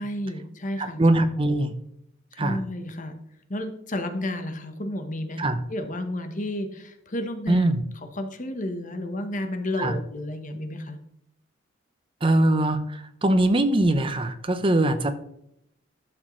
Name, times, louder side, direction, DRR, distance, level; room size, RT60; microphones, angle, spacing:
voice 1, 0.0-1.0 2.3-3.2 3.5-5.4 5.7-7.7 8.2-11.0, left 1 dB, 40° left, 7 dB, 1.0 m, -31 dB
voice 2, 0.8-1.7 2.4-2.6 5.4-5.6 7.5-7.8 9.8-10.0 12.2-15.2, right 1 dB, 25° right, 9 dB, 0.7 m, -22 dB
11.5 x 6.4 x 3.1 m, 0.74 s
head